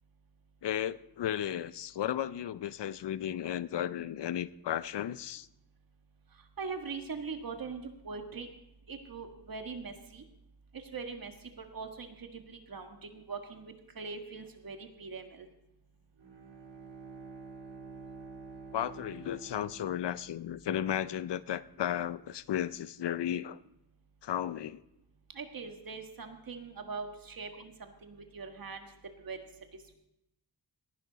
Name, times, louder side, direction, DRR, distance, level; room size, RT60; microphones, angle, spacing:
voice 1, 0.6-5.5 18.7-23.6 24.2-24.8, left 10 dB, 85° left, 16 dB, 0.6 m, -34 dB
voice 2, 6.3-8.5 8.9-10.3 10.7-15.5 25.3-30.0, right 4 dB, 55° right, 5 dB, 1.6 m, -42 dB
Bowed string instrument, 16.2-20.8, right 4 dB, 80° right, 2.4 m, -49 dB
18.0 x 11.5 x 4.0 m, 0.85 s
wide cardioid pair, 160°, 41 cm